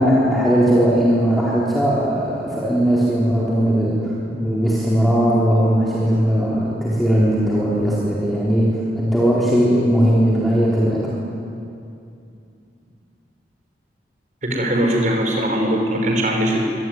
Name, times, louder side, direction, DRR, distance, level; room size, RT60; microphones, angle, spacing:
voice 1, 0.0-11.2, equal, ahead, -7 dB, 4.1 m, -18 dB
voice 2, 14.4-16.6, right 1 dB, 45° right, 1 dB, 5.7 m, -20 dB
24.5 x 24.5 x 9.6 m, 2.5 s
head